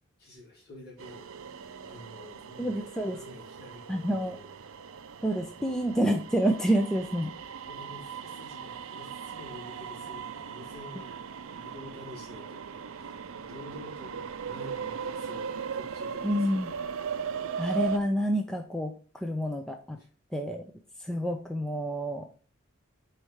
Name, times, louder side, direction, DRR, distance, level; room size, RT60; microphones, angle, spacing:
voice 1, 0.2-1.5 1.8-4.5 4.8-5.1 7.6-11.2 11.5-16.8 20.0-20.1, left 2 dB, 45° left, -4 dB, 3.0 m, -49 dB
sound 1, 1.0-18.0, right 6 dB, 75° right, 0.5 m, -39 dB
voice 2, 2.6-3.2 3.9-4.4 5.2-7.3 16.2-16.7 17.6-20.0 20.3-20.6 21.0-22.3, equal, 5° left, 3 dB, 0.5 m, -28 dB
4.9 x 4.5 x 5.5 m, 0.39 s
head